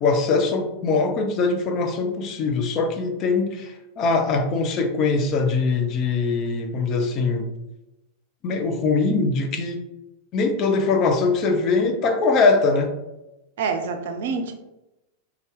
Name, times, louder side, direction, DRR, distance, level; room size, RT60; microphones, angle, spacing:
voice 1, 0.0-7.5 8.4-9.8 10.3-12.9, left 4 dB, 35° left, 5 dB, 0.5 m, -22 dB
voice 2, 13.6-14.5, right 5 dB, 55° right, 6 dB, 0.4 m, -26 dB
2.6 x 2.3 x 3.5 m, 0.93 s
figure-of-eight pair, 90°, 0 cm